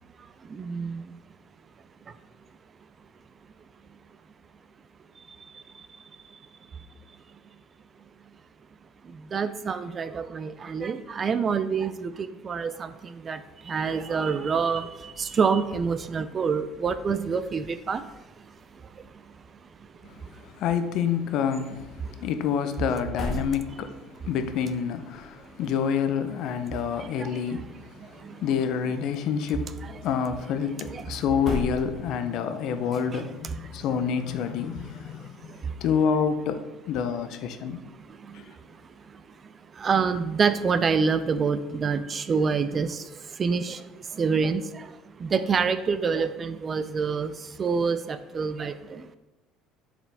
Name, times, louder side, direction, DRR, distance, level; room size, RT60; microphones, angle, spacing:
voice 1, 0.4-1.1 2.1-2.2 5.2-5.9 6.3-6.4 6.7-6.9 9.0-18.5 18.8-19.1 20.2-20.4 22.0-22.2 22.9-23.0 25.4-25.5 27.0-27.6 28.0-28.4 29.8-29.9 30.9-31.1 33.1-33.8 35.1-35.8 37.8-38.8 39.1-49.2, right 5 dB, 25° right, 12 dB, 0.3 m, -28 dB
sound 1, 14.4-32.5, left 1 dB, 25° left, 1.4 m, -43 dB
voice 2, 20.6-27.7 28.3-35.5 35.8-37.8 38.3-38.4, left 7 dB, 55° left, 9 dB, 0.6 m, -28 dB
7.0 x 4.8 x 3.5 m, 1.0 s
cardioid pair, 155°, 0 cm